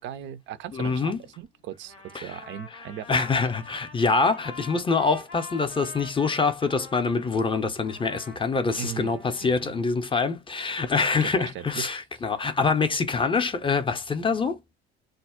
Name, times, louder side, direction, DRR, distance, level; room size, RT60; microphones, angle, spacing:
voice 1, 0.0-1.9 2.2-3.2 8.8-9.8 11.1-11.9, right 10 dB, 35° right, 0.4 m, -38 dB
voice 2, 0.7-1.2 2.1-2.3 3.1-14.6, left 4 dB, 15° left, 0.5 m, -25 dB
Trumpet, 1.8-7.3 7.8-9.8, left 3 dB, 90° left, 0.7 m, -45 dB
2.3 x 2.0 x 3.5 m
figure-of-eight pair, 55°, 32 cm